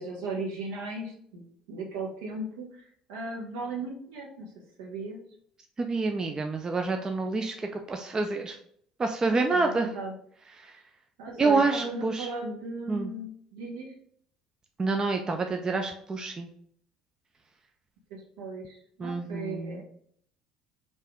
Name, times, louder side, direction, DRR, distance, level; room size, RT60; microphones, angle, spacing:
voice 1, 0.0-2.8 3.1-4.5 4.8-5.2 9.5-10.1 11.2-13.9 18.1-19.8, right 3 dB, 65° right, -1 dB, 1.1 m, -37 dB
voice 2, 5.8-8.6 9.0-9.9 10.5-10.8 11.4-12.3 12.9-13.1 14.8-16.5 19.0-19.8, right 3 dB, 25° right, 4 dB, 0.5 m, -28 dB
5.3 x 2.7 x 3.5 m, 0.65 s
figure-of-eight pair, 55°, 3 cm